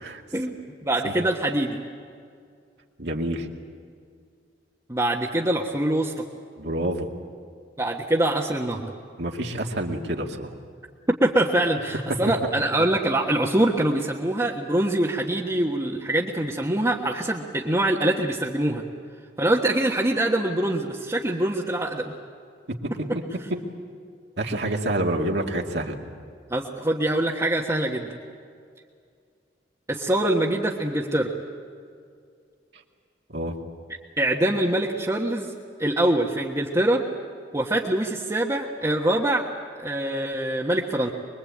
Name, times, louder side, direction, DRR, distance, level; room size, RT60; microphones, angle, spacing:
voice 1, 0.8-1.8 4.9-6.1 7.8-8.9 11.2-18.8 19.4-22.1 26.5-28.2 29.9-31.3 34.2-35.5 35.8-37.0 37.5-39.5 39.8-41.1, right 1 dB, 20° right, -3 dB, 1.4 m, -24 dB
voice 2, 3.0-3.5 6.6-7.1 9.2-10.5 22.7-23.1 23.5-23.6 24.4-26.0 33.3-33.6, right 1 dB, 65° right, 1 dB, 2.4 m, -28 dB
24.5 x 22.5 x 8.6 m, 2.3 s
head